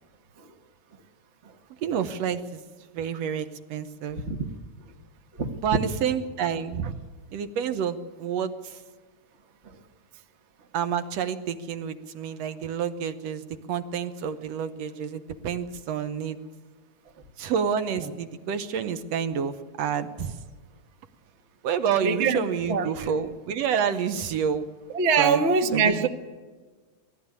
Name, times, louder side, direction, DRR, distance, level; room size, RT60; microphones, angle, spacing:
voice 1, 1.8-2.6 2.9-4.2 5.6-7.0 7.3-8.8 10.7-13.4 13.7-16.4 17.4-20.4 21.6-24.7 25.2-25.4 25.7-26.1, right 7 dB, 70° right, 9 dB, 1.9 m, -29 dB
voice 2, 22.0-22.4 22.7-22.9 24.9-26.1, right 5 dB, 50° right, 5 dB, 0.8 m, -23 dB
19.5 x 15.0 x 9.6 m, 1.4 s
omnidirectional pair, 3.4 m